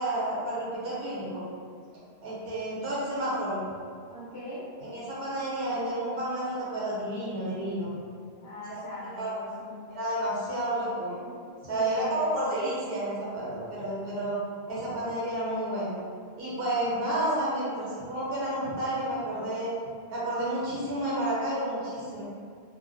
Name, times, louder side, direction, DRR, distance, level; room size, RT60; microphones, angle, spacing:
voice 1, 0.0-1.4 2.2-3.6 4.8-7.9 8.7-8.8 9.1-9.3 9.9-11.1 11.7-14.4 14.7-15.9 16.4-19.7 20.1-22.2, right 1 dB, 70° right, -7 dB, 0.9 m, -30 dB
voice 2, 4.1-4.7 8.4-9.8 11.2-11.4 11.7-12.4, left 1 dB, 85° left, -8 dB, 0.8 m, -41 dB
2.3 x 2.1 x 2.5 m, 2.2 s
omnidirectional pair, 1.0 m